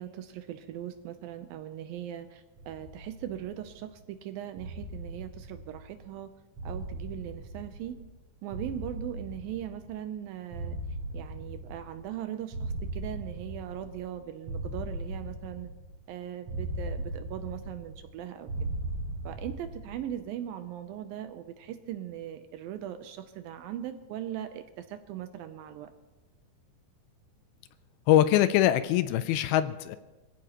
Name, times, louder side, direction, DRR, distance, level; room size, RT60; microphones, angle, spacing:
voice 1, 0.0-6.3 6.6-8.0 8.4-10.8 11.1-15.7 16.1-18.7 19.2-25.9, right 11 dB, 80° right, 9 dB, 2.3 m, -39 dB
sound 1, 2.6-3.9 4.6-6.1 6.6-8.2 8.5-10.1 10.5-12.2 12.5-14.1 14.5-16.1 16.5-18.1 18.5-20.1, right 1 dB, 55° right, 4.0 m, -38 dB
voice 2, 28.1-30.0, left 12 dB, 80° left, 12 dB, 2.4 m, -23 dB
25.0 x 16.0 x 3.0 m, 1.1 s
omnidirectional pair, 4.5 m